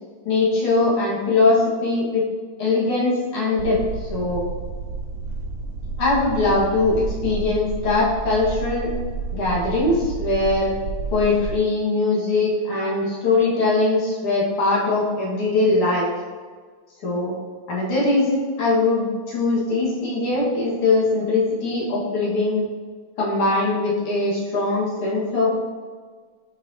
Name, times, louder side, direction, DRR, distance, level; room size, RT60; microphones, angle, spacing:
voice 1, 0.2-2.2 2.6-4.4 6.0-8.9 9.3-10.7 11.1-16.1 17.0-17.4 17.7-22.7 23.2-25.7, left 3 dB, 85° left, -6 dB, 2.7 m, -21 dB
sound 1, 3.6-11.6, right 3 dB, 70° right, 1.3 m, -30 dB
8.5 x 5.0 x 2.8 m, 1.5 s
omnidirectional pair, 2.3 m